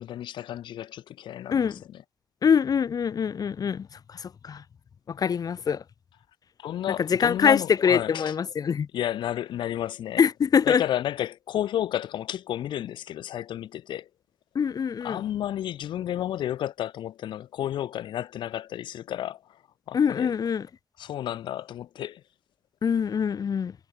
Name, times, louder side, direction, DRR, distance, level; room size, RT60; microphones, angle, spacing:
voice 1, 0.0-2.0 6.6-8.3 8.9-10.2 10.7-14.1 15.0-19.4 19.9-20.3 21.0-22.2, left 11 dB, 80° left, 2.6 m, -32 dB
voice 2, 1.5-1.8 2.4-4.6 5.1-5.8 7.0-8.9 10.2-10.8 14.5-15.2 19.9-20.7 22.8-23.7, left 7 dB, 55° left, 0.9 m, -24 dB
cardioid pair, 70°, 8 cm